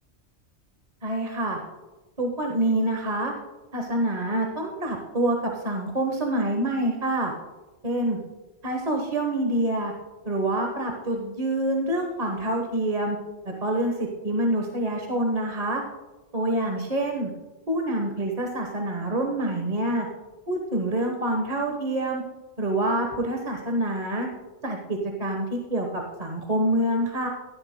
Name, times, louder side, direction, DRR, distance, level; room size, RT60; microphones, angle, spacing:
voice 1, 1.0-1.6 2.2-3.3 3.7-7.3 7.8-8.2 8.6-9.9 10.2-13.2 13.4-15.8 16.3-17.3 17.7-20.1 20.5-22.2 22.6-24.3 24.6-27.3, right 1 dB, 35° right, 2 dB, 1.3 m, -26 dB
16.5 x 11.5 x 2.2 m, 1.2 s
omnidirectional pair, 1.2 m